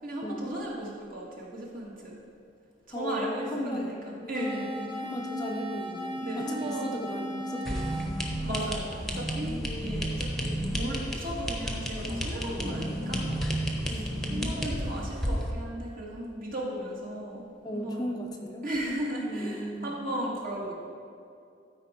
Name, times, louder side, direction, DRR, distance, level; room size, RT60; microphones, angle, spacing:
voice 1, 0.0-2.2 2.9-4.7 6.2-6.9 8.4-13.3 13.8-14.0 14.3-17.4 17.7-18.1 18.6-20.7, right 1 dB, 50° right, -4 dB, 2.0 m, -35 dB
voice 2, 2.9-3.9 4.2-8.1 9.6-10.1 13.9-14.5 17.6-18.7 19.3-19.9, equal, 20° left, 2 dB, 0.6 m, -36 dB
sound 1, 4.3-9.4, equal, 25° right, 0.8 m, -36 dB
sound 2, 7.6-15.5, equal, ahead, 1.0 m, -32 dB
12.5 x 4.9 x 4.4 m, 2.6 s
head